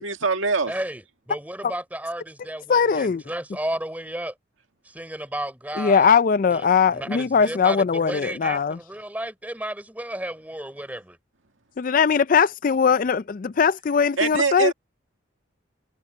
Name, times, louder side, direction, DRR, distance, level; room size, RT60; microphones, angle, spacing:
voice 1, 0.0-0.7 14.2-14.7, right 4 dB, 80° right, 2.1 m, -23 dB
voice 2, 0.7-4.3 4.8-6.1 6.5-11.2, right 1 dB, 10° right, 4.0 m, -33 dB
voice 3, 2.7-3.2 5.8-8.8 11.8-14.7, left 6 dB, 40° left, 0.4 m, -20 dB
head